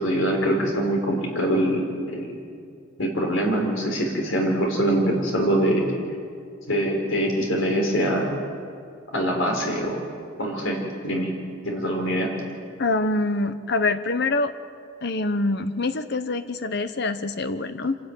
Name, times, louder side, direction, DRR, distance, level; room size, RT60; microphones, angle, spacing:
voice 1, 0.0-1.8 2.1-2.3 3.0-5.8 6.7-8.3 9.1-10.0 10.4-11.3 11.6-12.3, equal, 85° left, 1 dB, 4.3 m, -23 dB
voice 2, 12.8-14.5 15.0-18.0, left 2 dB, 55° left, 11 dB, 1.0 m, -25 dB
26.0 x 13.0 x 9.1 m, 2.3 s
head